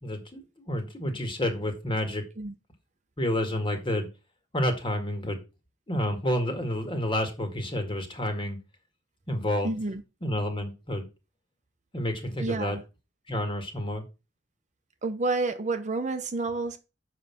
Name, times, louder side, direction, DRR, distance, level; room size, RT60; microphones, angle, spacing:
voice 1, 0.0-2.2 3.2-4.1 4.5-5.4 5.9-8.6 9.3-9.7 10.2-11.1 11.9-12.8 13.3-14.0, left 1 dB, 25° left, 2.1 m, -29 dB
voice 2, 9.6-10.0 12.4-12.8 15.0-16.8, right 3 dB, 40° right, 0.8 m, -29 dB
7.5 x 5.6 x 5.8 m
head